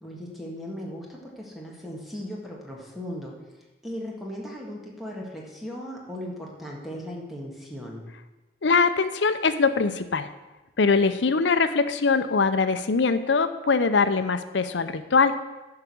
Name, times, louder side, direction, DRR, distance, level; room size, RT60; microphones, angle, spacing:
voice 1, 0.0-3.4 3.8-8.1, equal, ahead, -3 dB, 1.7 m, -37 dB
voice 2, 8.6-10.3 10.8-15.3, left 4 dB, 85° left, 11 dB, 0.6 m, -22 dB
10.5 x 4.8 x 7.0 m, 1.1 s
head